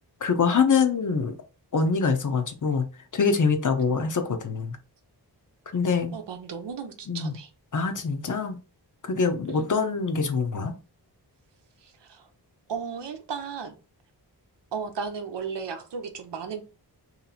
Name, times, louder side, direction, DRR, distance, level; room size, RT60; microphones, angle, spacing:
voice 1, 0.2-1.3 1.7-2.8 3.1-4.8 5.7-6.1 7.1-7.3 7.7-8.6 9.1-10.7, left 5 dB, 50° left, 0.7 m, -24 dB
voice 2, 6.1-7.5 9.5-9.8 11.8-12.3 12.7-13.7 14.7-16.6, right 6 dB, 85° right, 0.8 m, -35 dB
3.1 x 2.8 x 4.1 m
wide cardioid pair, 140°, 41 cm